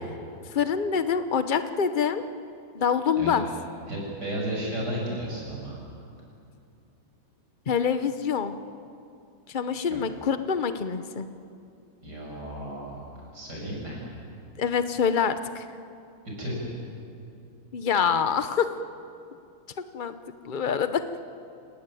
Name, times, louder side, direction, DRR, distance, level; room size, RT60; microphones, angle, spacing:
voice 1, 0.5-2.2 2.7-3.4 7.7-8.6 9.5-11.3 14.6-15.7 17.7-18.8 19.9-20.2 20.4-21.0, left 7 dB, 80° left, 10 dB, 0.4 m, -25 dB
voice 2, 3.9-5.8 9.9-10.0 12.0-13.0 13.3-14.0 16.4-16.5, equal, 50° right, -3 dB, 8.3 m, -33 dB
29.0 x 18.5 x 9.1 m, 2.5 s
omnidirectional pair, 2.2 m